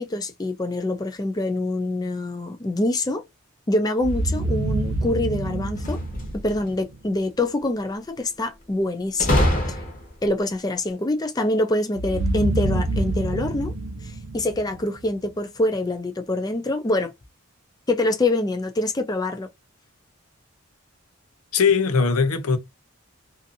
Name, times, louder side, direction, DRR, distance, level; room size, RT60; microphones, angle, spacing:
voice 1, 0.0-3.2 3.7-6.0 6.3-9.8 10.2-13.7 14.0-17.1 17.9-19.5, left 2 dB, 15° left, 0.4 m, -25 dB
sound 1, 4.0-7.0 12.0-15.2, right 2 dB, 70° right, 0.5 m, -27 dB
sound 2, 5.7-6.7 9.2-10.3, left 1 dB, 40° left, 0.9 m, -24 dB
voice 2, 21.5-22.6, left 5 dB, 85° left, 0.6 m, -19 dB
2.6 x 2.5 x 2.5 m
head